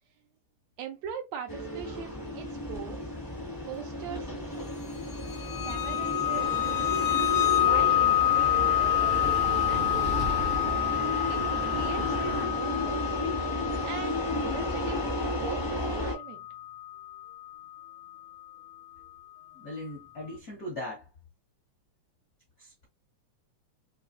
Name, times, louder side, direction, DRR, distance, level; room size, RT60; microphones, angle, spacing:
voice 1, 0.8-3.0 3.6-4.4 5.6-6.5 7.6-9.2 9.7-10.6 11.3-13.4 13.8-15.0 15.4-16.4, right 8 dB, 75° right, 1.7 m, -41 dB
sound 1, 1.5-16.1, left 1 dB, 20° left, 0.5 m, -33 dB
sound 2, 5.3-17.8, left 13 dB, 75° left, 1.9 m, -28 dB
sound 3, 6.3-12.5, right 1 dB, 60° right, 0.7 m, -35 dB
voice 2, 19.5-21.1 22.6-22.9, left 1 dB, 60° left, 0.9 m, -39 dB
4.7 x 3.0 x 2.5 m
omnidirectional pair, 3.5 m